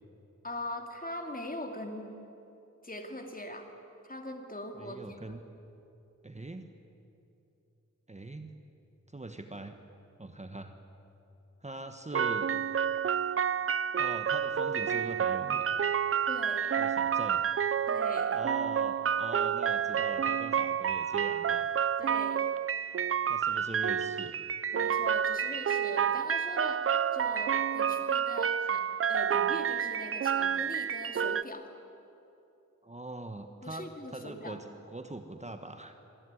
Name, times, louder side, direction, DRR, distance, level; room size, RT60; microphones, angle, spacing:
voice 1, 0.4-2.1 2.8-3.7 4.0-5.2 16.3-16.8 17.9-18.4 22.0-22.5 24.7-31.7 33.6-34.6, left 1 dB, 30° left, 4 dB, 2.8 m, -41 dB
voice 2, 4.8-5.4 6.2-6.6 8.1-8.5 9.1-9.8 10.2-10.7 11.6-12.5 14.0-15.7 16.8-17.4 18.3-21.7 23.3-24.3 32.8-36.0, right 2 dB, 20° right, 6 dB, 1.3 m, -42 dB
sound 1, 12.1-31.4, right 8 dB, 50° right, 0.5 m, -29 dB
25.5 x 18.0 x 9.8 m, 2.8 s
wide cardioid pair, 95°, 30 cm